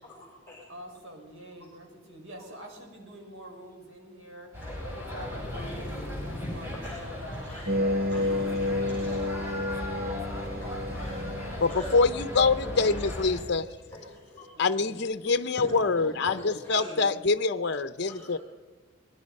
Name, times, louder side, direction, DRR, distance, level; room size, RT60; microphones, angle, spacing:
voice 1, 0.0-0.6 1.6-1.7 2.4-2.5 6.4-7.1 7.4-7.7 8.0-8.5 8.9-9.3 10.9-11.3 11.7-11.8 12.6-12.8 13.9-14.1 14.3-14.7 15.7-17.0 18.0-18.4, left 1 dB, 10° left, -4 dB, 6.1 m, -44 dB
voice 2, 0.7-4.5 4.8-11.8 14.5-15.1, right 1 dB, 70° right, 2 dB, 5.5 m, -47 dB
sound 1, 4.5-13.4, left 1 dB, 10° right, 6.2 m, -37 dB
sound 2, 7.7-13.2, left 1 dB, 45° right, 1.4 m, -31 dB
voice 3, 11.6-13.7 14.6-18.4, left 4 dB, 50° left, 10 dB, 0.7 m, -25 dB
26.0 x 21.5 x 5.4 m, 1.3 s
head